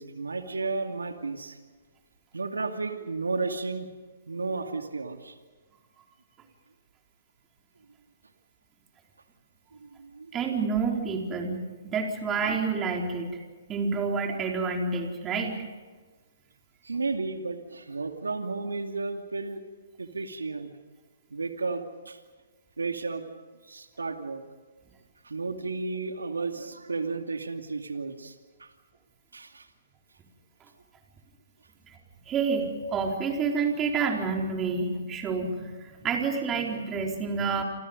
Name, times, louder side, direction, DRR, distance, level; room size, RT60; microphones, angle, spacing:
voice 1, 0.0-1.6 2.3-3.9 4.3-5.3 9.8-10.3 16.8-19.6 20.0-20.7 21.3-22.2 22.8-23.3 23.6-24.4 25.2-28.7 29.3-29.7, right 3 dB, 85° right, 5 dB, 2.5 m, -33 dB
voice 2, 10.3-13.3 13.7-15.6 32.3-37.6, right 4 dB, 20° right, 1 dB, 4.3 m, -28 dB
28.5 x 27.5 x 5.4 m, 1.4 s
hypercardioid pair, 130°, 0 cm